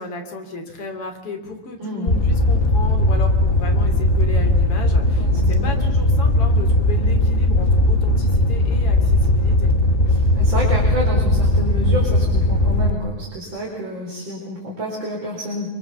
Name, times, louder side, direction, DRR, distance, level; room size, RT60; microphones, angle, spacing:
voice 1, 0.0-9.7, left 2 dB, 50° left, 4 dB, 4.3 m, -34 dB
voice 2, 1.8-2.2 5.2-5.8 10.0-15.7, equal, 35° right, -3 dB, 5.1 m, -29 dB
Fire, 2.1-12.9, left 1 dB, 25° left, 1.4 m, -18 dB
26.5 x 23.5 x 7.1 m, 1.0 s
omnidirectional pair, 3.4 m